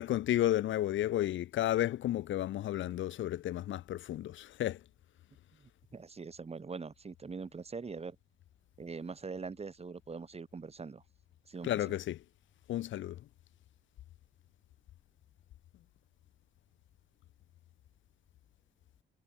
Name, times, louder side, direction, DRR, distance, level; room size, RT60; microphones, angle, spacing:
voice 1, 0.0-4.8 11.6-12.2 12.7-13.2, left 13 dB, 75° left, 1.0 m, -32 dB
voice 2, 5.6-8.2 8.8-11.0 11.5-11.9, right 4 dB, 30° right, 3.9 m, -43 dB
cardioid pair, 90°, 20 cm